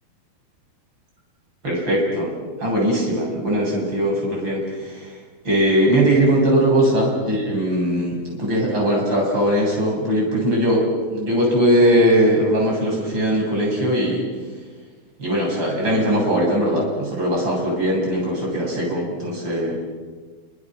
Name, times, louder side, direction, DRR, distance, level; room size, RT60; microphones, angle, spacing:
voice 1, 1.6-2.3 2.6-5.1 5.5-10.8 11.1-14.2 15.2-19.8, equal, 30° right, -2 dB, 8.7 m, -20 dB
29.0 x 26.0 x 6.5 m, 1.4 s
omnidirectional pair, 4.5 m